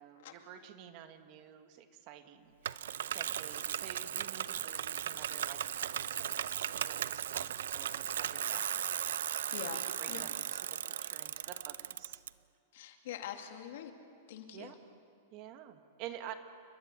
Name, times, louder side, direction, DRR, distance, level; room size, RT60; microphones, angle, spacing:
voice 1, 0.0-2.8 3.1-8.8 9.6-10.6 11.0-12.2 14.5-14.8 15.3-16.3, right 10 dB, 35° right, 8 dB, 1.4 m, -50 dB
Bicycle, 2.6-12.3, right 10 dB, 85° right, 0.6 m, -37 dB
voice 2, 9.5-10.3 12.7-13.9 14.3-14.7, left 9 dB, 60° left, 4 dB, 2.3 m, -44 dB
29.5 x 12.5 x 9.3 m, 2.2 s
supercardioid pair, 165°, 0 cm